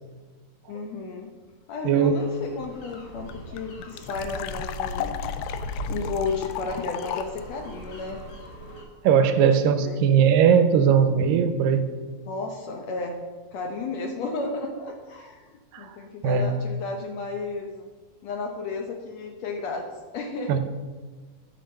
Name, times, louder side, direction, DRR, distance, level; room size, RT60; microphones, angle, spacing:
voice 1, 0.7-1.3 1.7-5.2 5.9-8.2 9.2-10.0 12.2-13.2 13.5-17.9 18.2-19.9 20.1-20.6, left 3 dB, 70° left, 3 dB, 1.7 m, -33 dB
sound 1, 2.1-8.8, equal, 45° left, 2.5 m, -38 dB
sound 2, 2.6-2.7 2.9-3.0 3.3-7.4, left 11 dB, 85° left, 1.6 m, -35 dB
voice 2, 9.0-11.9 15.7-15.9 16.2-16.5 20.5-20.6, right 7 dB, 90° right, 9 dB, 2.5 m, -19 dB
10.5 x 6.8 x 6.5 m, 1.4 s
omnidirectional pair, 3.9 m